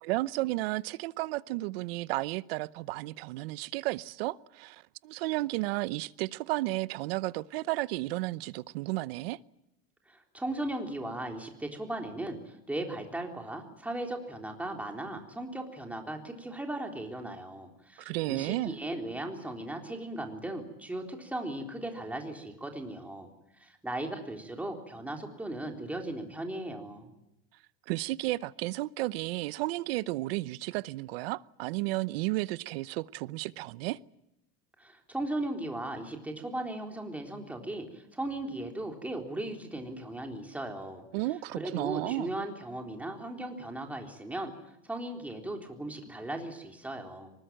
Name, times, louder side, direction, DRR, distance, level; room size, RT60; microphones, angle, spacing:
voice 1, 0.0-9.4 18.0-18.7 27.9-34.0 41.1-42.3, right 19 dB, 80° right, 0.9 m, -33 dB
voice 2, 10.1-23.3 23.6-27.1 34.8-41.1 41.5-44.5 44.8-47.3, right 1 dB, 5° right, 3.7 m, -37 dB
24.0 x 20.5 x 9.1 m
supercardioid pair, 145°, 30 cm